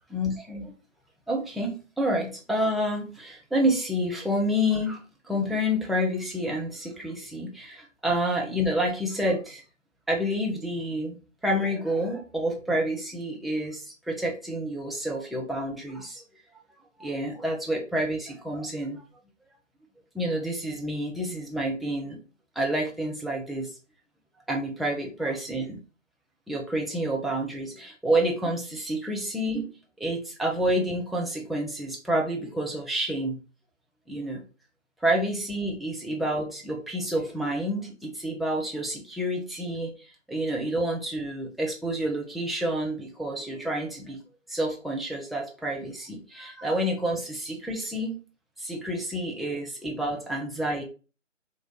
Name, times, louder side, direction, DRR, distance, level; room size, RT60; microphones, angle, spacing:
voice 1, 0.1-0.7 1.3-9.6 10.1-11.2 11.4-16.2 17.0-19.0 20.1-22.2 22.6-23.7 24.5-25.8 26.5-29.7 30.0-33.4 34.1-34.4 35.0-39.9 40.3-44.2 44.5-48.1 48.6-50.8, equal, ahead, -1 dB, 0.4 m, -29 dB
3.9 x 2.9 x 2.9 m, 0.34 s
figure-of-eight pair, 170°, 38 cm